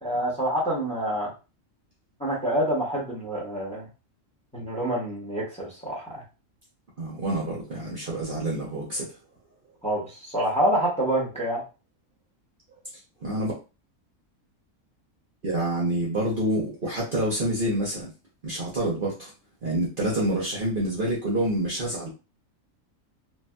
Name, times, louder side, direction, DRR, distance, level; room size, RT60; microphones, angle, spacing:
voice 1, 0.0-1.3 2.2-3.9 4.5-6.2 9.8-11.6, right 1 dB, 5° left, -5 dB, 1.0 m, -27 dB
voice 2, 7.0-9.1 13.2-13.5 15.4-18.1 18.4-19.3 19.6-22.1, right 1 dB, 45° right, -4 dB, 0.8 m, -27 dB
3.2 x 2.6 x 2.2 m, 0.31 s
omnidirectional pair, 1.4 m